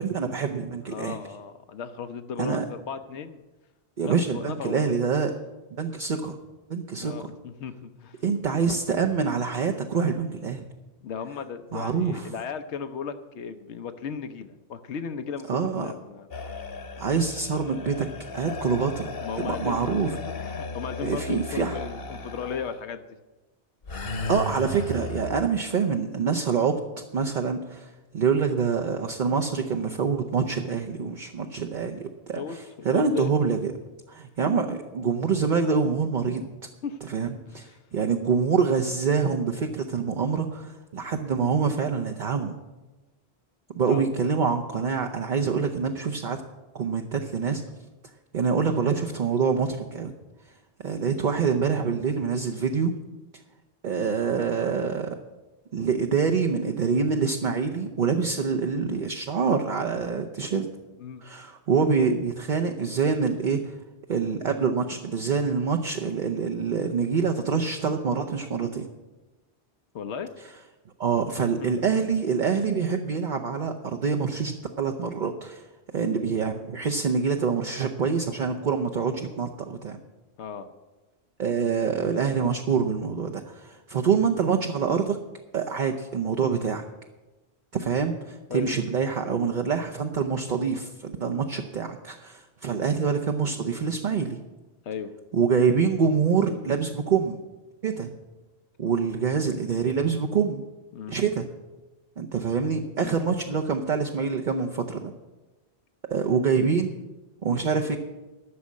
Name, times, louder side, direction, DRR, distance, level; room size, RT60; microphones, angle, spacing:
voice 1, 0.0-1.2 2.4-2.6 4.0-5.3 5.8-6.4 6.7-7.3 8.2-10.7 11.7-12.3 15.5-15.9 17.0-18.1 18.3-19.1 19.4-20.1 21.0-21.8 24.3-26.8 27.1-33.7 34.1-36.5 37.1-42.5 43.8-46.4 46.7-47.6 48.3-50.1 50.8-52.9 53.8-55.2 55.7-60.7 61.2-63.7 64.1-68.9 71.0-75.6 75.9-80.0 81.4-85.2 85.5-86.8 87.7-94.4 95.3-97.4 97.8-98.1 98.8-100.6 101.1-101.5 102.2-105.1 106.1-107.0 107.4-108.0, right 5 dB, 50° right, 4 dB, 0.8 m, -26 dB
voice 2, 0.8-3.4 4.0-5.0 7.0-8.2 11.0-16.3 19.2-23.2 32.3-33.3 36.8-37.0 37.5-37.8 43.9-44.3 61.0-61.2 69.9-70.3 71.4-71.8 80.4-80.7 88.5-88.8 94.8-95.1 99.0-99.1 100.9-101.2 103.0-103.2, left 6 dB, 85° left, 9 dB, 1.0 m, -36 dB
sound 1, 16.3-22.8 23.8-25.5, left 3 dB, 60° left, 1.2 m, -35 dB
13.0 x 6.3 x 8.3 m, 1.1 s
omnidirectional pair, 1.1 m